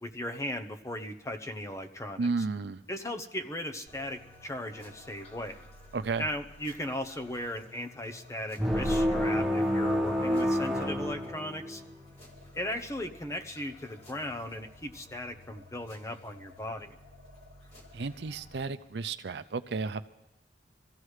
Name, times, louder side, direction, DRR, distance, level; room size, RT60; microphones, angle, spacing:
voice 1, 0.0-2.5 2.9-5.6 6.2-11.8 12.5-17.0, left 1 dB, 15° left, 6 dB, 0.8 m, -37 dB
voice 2, 2.2-2.8 5.9-6.2 17.9-20.1, right 4 dB, 70° right, 10 dB, 0.5 m, -32 dB
sound 1, 3.9-18.6, left 2 dB, 40° left, 4.1 m, -53 dB
sound 2, 8.6-11.9, equal, ahead, 1.3 m, -28 dB
25.0 x 15.5 x 3.3 m, 0.92 s
head